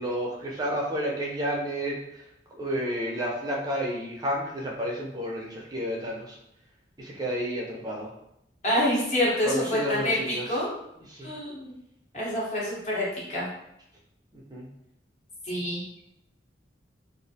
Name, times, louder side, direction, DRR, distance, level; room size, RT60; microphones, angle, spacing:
voice 1, 0.0-2.0 2.6-6.4 7.0-8.1 9.4-10.4 11.1-11.3 14.3-14.7, equal, 20° right, -3 dB, 0.5 m, -31 dB
voice 2, 8.6-10.7 11.2-11.7 12.1-13.5 15.4-15.8, left 1 dB, 40° left, -6 dB, 0.8 m, -27 dB
2.4 x 2.0 x 2.7 m, 0.80 s
head